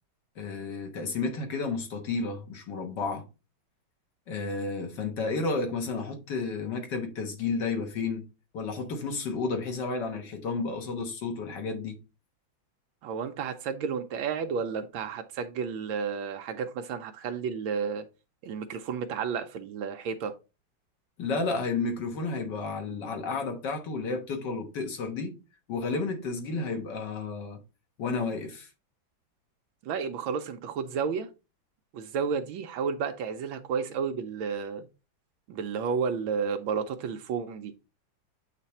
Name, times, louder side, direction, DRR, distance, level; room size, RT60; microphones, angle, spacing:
voice 1, 0.4-3.2 4.3-8.2 8.5-12.0 21.2-25.3 25.7-27.6 28.0-28.7, left 4 dB, 60° left, 1.9 m, -32 dB
voice 2, 13.0-18.1 18.4-20.3 29.8-31.3 31.9-34.9 35.5-37.7, right 6 dB, 85° right, 1.5 m, -32 dB
8.2 x 3.3 x 4.2 m
omnidirectional pair, 2.2 m